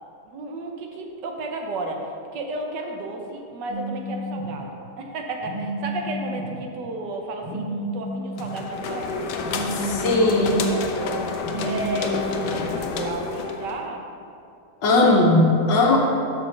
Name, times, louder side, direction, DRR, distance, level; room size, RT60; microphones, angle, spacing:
voice 1, 0.2-9.4 9.8-10.1 10.5-14.1, right 2 dB, 75° right, 2 dB, 1.5 m, -33 dB
Telephone, 3.7-4.5 5.4-6.5 7.4-8.5 9.4-10.5 11.4-12.5, equal, 15° right, 1.3 m, -31 dB
sound 1, 8.4-13.9, left 4 dB, 70° left, 1.2 m, -29 dB
voice 2, 9.7-10.7 14.8-16.0, left 2 dB, 85° left, 0 dB, 1.8 m, -18 dB
6.0 x 6.0 x 6.5 m, 2.5 s
omnidirectional pair, 1.9 m